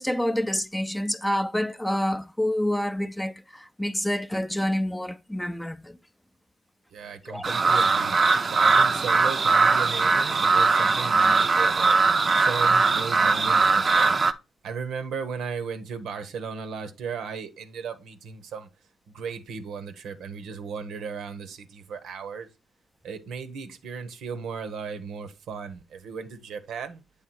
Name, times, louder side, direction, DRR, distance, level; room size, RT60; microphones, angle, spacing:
voice 1, 0.0-6.0 7.3-7.7, left 1 dB, 5° left, 0.5 m, -28 dB
voice 2, 6.9-12.0 12.3-14.2 14.6-18.7 19.1-22.5 23.0-27.0, right 5 dB, 75° right, 0.8 m, -36 dB
sound 1, 7.4-14.3, right 4 dB, 40° right, 0.5 m, -20 dB
7.9 x 3.4 x 4.5 m
hypercardioid pair, 50°, 0 cm